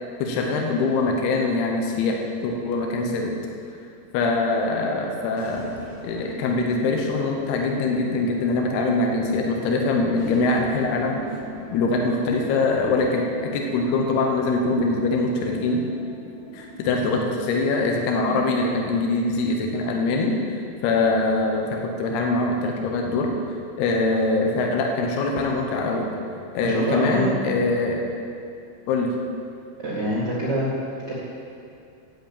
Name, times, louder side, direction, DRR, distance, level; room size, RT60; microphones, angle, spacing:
voice 1, 0.2-3.3 4.1-5.7 6.0-11.2 11.7-15.8 16.5-20.4 20.8-23.3 23.8-26.1 26.5-28.1 28.9-29.2, left 3 dB, 75° left, 1 dB, 2.7 m, -23 dB
sound 1, 5.3-21.3, right 1 dB, 90° left, 1.3 m, -41 dB
voice 2, 26.6-27.3 29.8-30.7 31.1-31.2, equal, 80° right, -7 dB, 0.9 m, -25 dB
8.0 x 8.0 x 8.7 m, 2.5 s
omnidirectional pair, 5.2 m